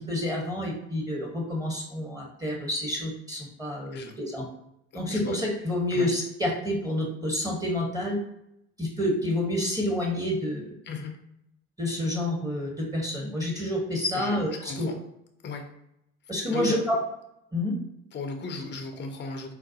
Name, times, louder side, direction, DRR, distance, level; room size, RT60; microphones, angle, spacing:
voice 1, 0.1-4.4 4.9-8.2 8.8-10.6 11.8-14.9 16.3-17.0 17.5-17.7, left 1 dB, 10° right, -2 dB, 1.0 m, -28 dB
voice 2, 14.1-14.9 15.4-15.6 16.5-16.8 18.1-19.5, left 4 dB, 30° left, 3 dB, 0.6 m, -35 dB
3.9 x 2.1 x 2.8 m, 0.81 s
hypercardioid pair, 65°, 35 cm